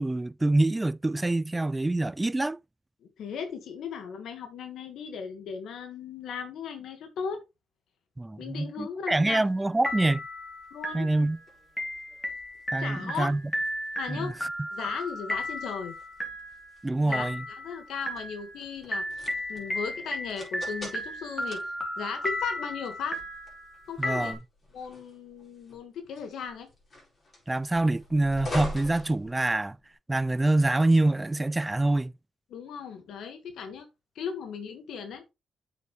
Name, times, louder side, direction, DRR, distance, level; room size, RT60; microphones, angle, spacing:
voice 1, 0.0-2.6 8.2-10.2 10.9-11.4 12.7-13.4 14.1-14.3 16.8-17.4 24.0-24.4 27.5-29.8 30.1-32.1, right 2 dB, 15° right, 0.4 m, -25 dB
voice 2, 3.2-7.4 8.4-9.5 10.7-11.1 12.8-13.3 14.0-14.3 14.7-16.0 17.0-19.0 19.5-21.6 22.0-23.2 23.9-24.3 24.7-26.7 32.5-33.9 34.2-35.2, left 6 dB, 80° left, 1.7 m, -37 dB
sound 1, 9.2-9.6 9.8-24.3, left 1 dB, 10° left, 3.2 m, -35 dB
sound 2, 10.6-29.9, left 1 dB, 35° left, 4.6 m, -45 dB
8.4 x 7.0 x 3.3 m
cardioid pair, 105°, 0 cm